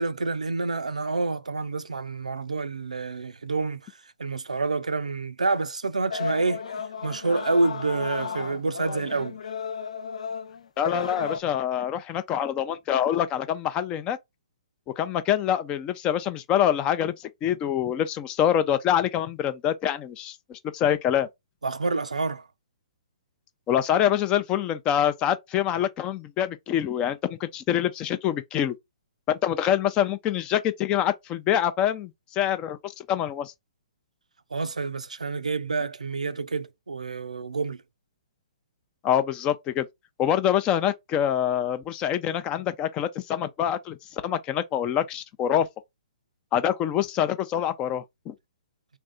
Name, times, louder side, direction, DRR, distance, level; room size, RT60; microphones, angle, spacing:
voice 1, 0.0-3.9 4.2-6.6 7.0-9.4 21.6-22.5 34.5-37.8, right 3 dB, 90° right, 0.5 m, -28 dB
sound 1, 6.1-11.4, left 6 dB, 75° left, 0.6 m, -34 dB
voice 2, 10.8-14.2 15.0-21.3 23.7-28.8 29.3-33.5 39.0-39.9 40.2-45.7 46.5-48.3, left 10 dB, 25° left, 0.5 m, -25 dB
3.4 x 2.6 x 3.6 m
hypercardioid pair, 130°, 4 cm